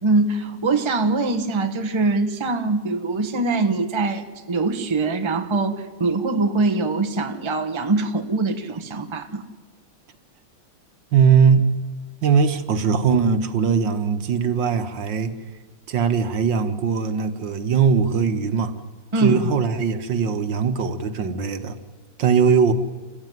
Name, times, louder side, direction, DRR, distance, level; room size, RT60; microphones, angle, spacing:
voice 1, 0.0-9.4 19.1-19.7, right 3 dB, 15° right, 7 dB, 1.1 m, -23 dB
voice 2, 11.1-11.6 12.2-15.3 15.9-18.7 19.2-21.8 22.2-22.7, right 6 dB, 65° right, 9 dB, 1.9 m, -20 dB
28.0 x 15.0 x 9.3 m, 1.3 s
omnidirectional pair, 2.2 m